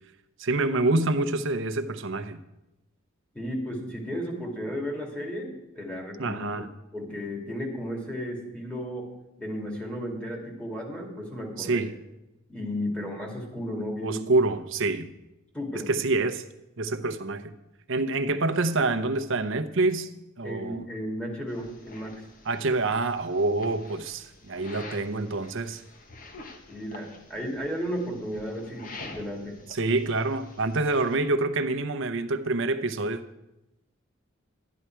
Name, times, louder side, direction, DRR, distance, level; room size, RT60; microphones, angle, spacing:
voice 1, 0.4-2.4 6.2-6.7 11.6-11.9 14.0-15.1 15.9-16.4 16.8-17.5 17.9-20.1 20.4-20.8 22.5-25.8 29.7-33.2, right 2 dB, 65° right, 0.8 m, -26 dB
voice 2, 3.3-6.7 6.9-9.1 9.4-11.9 12.5-14.2 15.5-15.9 20.4-22.3 26.7-29.6, equal, 5° left, 2.3 m, -34 dB
sound 1, 21.5-31.2, left 2 dB, 40° left, 1.2 m, -47 dB
12.5 x 10.0 x 4.6 m
head